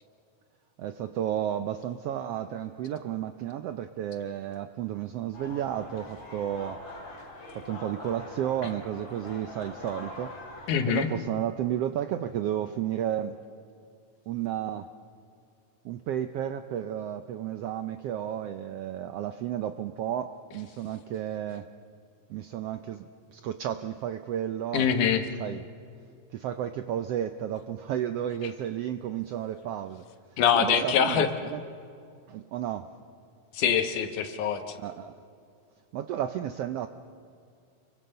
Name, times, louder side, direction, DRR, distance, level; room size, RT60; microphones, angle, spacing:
voice 1, 0.8-6.8 7.5-10.3 10.9-13.4 14.3-14.9 15.8-21.7 22.3-25.0 25.4-25.6 26.3-30.0 30.5-31.6 32.3-32.9 34.8-35.2 35.9-36.9, right 10 dB, 80° right, 9 dB, 1.4 m, -32 dB
sound 1, 5.3-10.9, left 2 dB, 50° left, 5.5 m, -43 dB
voice 2, 10.7-11.1 24.7-25.2 30.4-31.3 33.5-34.6, left 7 dB, 80° left, 7 dB, 2.8 m, -24 dB
28.5 x 24.0 x 5.5 m, 2.4 s
omnidirectional pair, 3.5 m